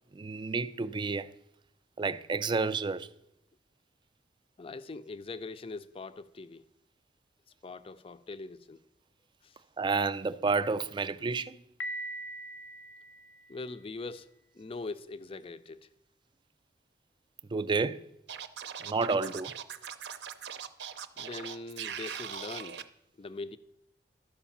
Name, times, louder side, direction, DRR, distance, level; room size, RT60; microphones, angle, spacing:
voice 1, 0.1-1.3 2.0-3.1 9.8-11.6 17.5-18.0 18.8-19.5, right 4 dB, 25° right, 0.4 m, -30 dB
voice 2, 4.6-6.6 7.6-8.8 9.4-9.6 13.5-14.3 14.5-15.9 21.2-22.8 23.2-23.6, left 3 dB, 30° left, 0.5 m, -42 dB
Piano, 11.8-13.8, right 1 dB, 90° left, 0.7 m, -41 dB
Scratching (performance technique), 18.3-22.8, right 8 dB, 70° right, 0.6 m, -40 dB
12.0 x 5.0 x 7.1 m
head